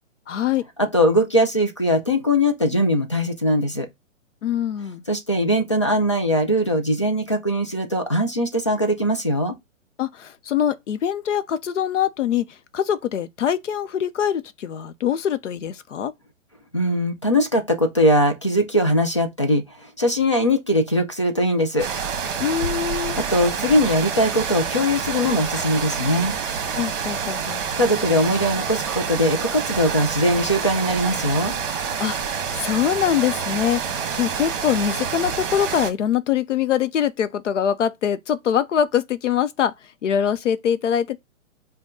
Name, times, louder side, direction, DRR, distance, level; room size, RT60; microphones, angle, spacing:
voice 1, 0.3-0.6 4.4-5.0 10.0-16.1 22.4-23.2 26.7-27.6 32.0-39.7 40.0-41.2, left 9 dB, 65° left, 0.7 m, -23 dB
voice 2, 0.8-3.9 5.1-9.6 16.7-21.9 23.2-26.3 27.8-31.5, equal, 25° left, 0.3 m, -21 dB
sound 1, 21.8-35.9, right 6 dB, 40° right, 1.3 m, -27 dB
5.2 x 2.2 x 3.6 m
hypercardioid pair, 155°, 40 cm